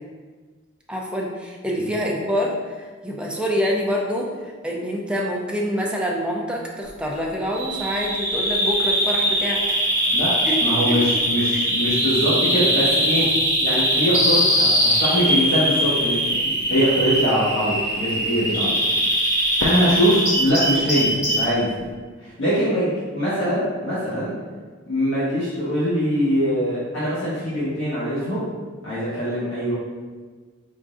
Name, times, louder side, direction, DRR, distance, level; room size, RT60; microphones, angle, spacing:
voice 1, 0.9-9.8 10.4-10.6 10.9-11.0 11.5-11.7 18.6-18.8, equal, 5° right, -2 dB, 0.5 m, -26 dB
Bird vocalization bird call bird song, 7.5-21.5, equal, 15° left, 1.0 m, -21 dB
voice 2, 10.6-13.3 13.6-18.7 19.6-21.7 22.2-24.3 24.9-28.5 28.8-29.7, equal, 70° left, -12 dB, 1.2 m, -22 dB
Fireworks, 19.6-21.9, left 2 dB, 85° left, 0.4 m, -35 dB
4.3 x 3.7 x 2.5 m, 1.4 s
head